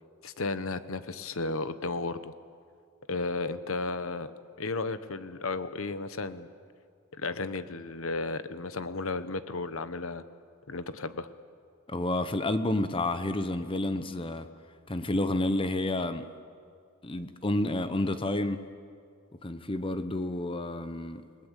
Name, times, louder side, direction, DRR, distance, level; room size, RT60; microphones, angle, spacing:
voice 1, 0.2-2.3 3.1-4.3 4.6-6.5 7.2-10.2 10.7-11.3, left 3 dB, 70° left, 1.1 m, -33 dB
voice 2, 11.9-14.5 14.9-16.2 17.0-18.7 19.4-21.2, left 1 dB, 25° left, 0.9 m, -30 dB
29.0 x 19.5 x 8.3 m
head